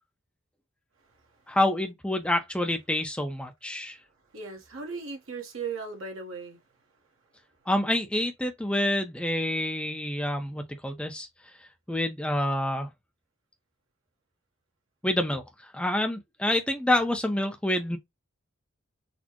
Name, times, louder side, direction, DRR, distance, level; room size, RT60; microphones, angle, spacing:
voice 1, 1.5-4.0 7.7-11.3 11.9-12.9 15.0-15.4 15.7-18.0, left 1 dB, 5° left, 0.5 m, -27 dB
voice 2, 4.3-6.6, right 4 dB, 75° right, 1.1 m, -37 dB
4.1 x 2.0 x 2.9 m
head